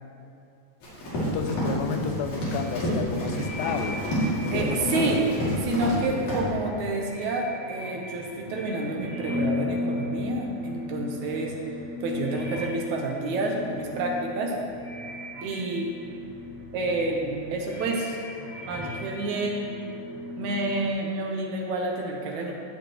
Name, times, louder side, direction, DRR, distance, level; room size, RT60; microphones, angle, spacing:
Run, 0.8-6.0 6.3-6.4, equal, 60° left, 3.8 m, -28 dB
voice 1, 1.2-4.0 4.4-5.1, left 7 dB, 90° left, 7 dB, 2.3 m, -32 dB
sound 1, 1.8-20.9, left 2 dB, 10° right, 1.6 m, -37 dB
voice 2, 4.5-5.2 5.5-11.5 12.0-14.6 15.4-15.9 16.7-18.2 18.7-19.7 20.4-22.5, right 2 dB, 70° right, 0 dB, 2.1 m, -29 dB
15.0 x 7.6 x 3.1 m, 2.6 s
omnidirectional pair, 3.8 m